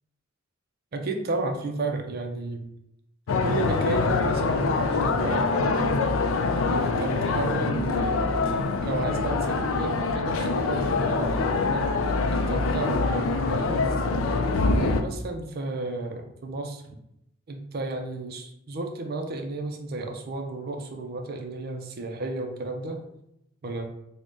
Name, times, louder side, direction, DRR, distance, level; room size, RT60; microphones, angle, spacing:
voice 1, 0.9-2.7 3.4-6.0 6.7-8.2 8.8-11.9 12.3-13.1 13.5-13.8 14.7-16.8 17.5-23.0 23.6-23.8, right 2 dB, 50° right, 4 dB, 0.4 m, -32 dB
sound 1, 3.3-15.0, left 3 dB, 85° left, 0.4 m, -24 dB
3.6 x 2.1 x 3.7 m, 0.79 s
head